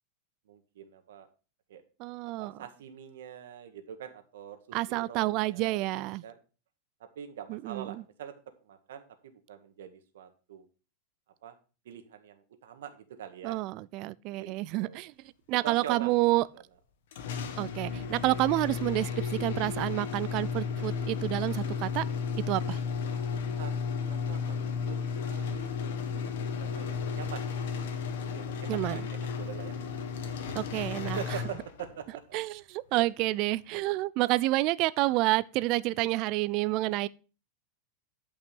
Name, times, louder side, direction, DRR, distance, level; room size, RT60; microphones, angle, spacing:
voice 1, 0.5-1.3 1.7-1.8 2.4-5.9 6.2-6.3 7.0-8.3 8.7-10.7 11.4-11.5 11.9-13.6 14.3-15.0 15.6-16.2 23.6-24.6 24.9-25.0 25.2-25.7 26.6-27.5 27.8-29.8 30.5-30.7 31.0-32.4 32.9-33.1, right 9 dB, 90° right, 1.8 m, -44 dB
voice 2, 2.0-2.6 4.7-6.2 7.5-7.9 13.4-15.1 15.5-16.5 17.6-22.0 22.5-22.8 28.7-29.1 30.5-31.2 32.3-37.1, right 18 dB, 40° right, 0.4 m, -29 dB
sound 1, 17.1-32.0, left 5 dB, 70° left, 1.7 m, -34 dB
11.0 x 5.5 x 5.4 m
supercardioid pair, 160°, 0 cm